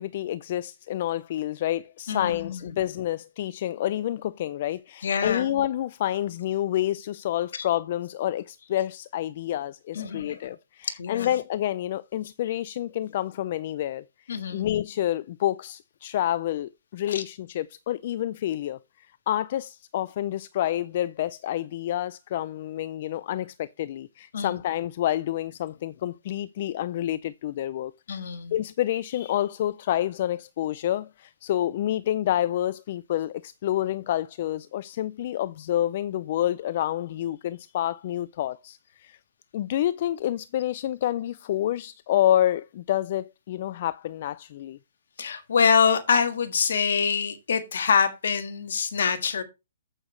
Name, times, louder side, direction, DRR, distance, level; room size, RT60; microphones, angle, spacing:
voice 1, 0.0-18.8 19.3-27.9 28.5-39.2 39.5-44.8, left 12 dB, 50° left, 0.4 m, -28 dB
voice 2, 2.1-2.8 5.0-5.5 7.5-7.8 9.9-10.4 11.0-11.4 12.4-12.6 14.3-14.7 17.1-17.2 24.3-24.6 28.1-28.6 45.2-49.4, left 6 dB, 70° left, 1.7 m, -25 dB
8.7 x 8.0 x 3.2 m
hypercardioid pair, 145°, 0 cm